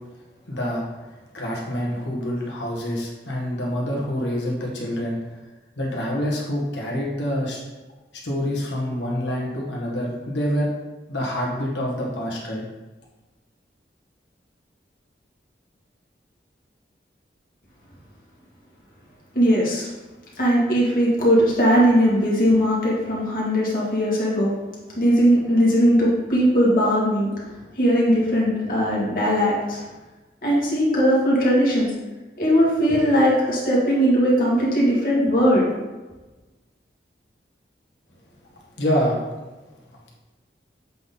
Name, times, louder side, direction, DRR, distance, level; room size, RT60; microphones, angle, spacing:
voice 1, 0.5-5.2 5.8-7.6 8.1-10.7 11.1-12.6 38.8-39.2, equal, 90° left, -3 dB, 1.8 m, -26 dB
voice 2, 19.3-19.9 20.4-24.5 25.0-29.8 30.4-31.9 32.4-35.6, equal, 50° left, -6 dB, 2.1 m, -19 dB
7.6 x 4.1 x 3.8 m, 1.2 s
head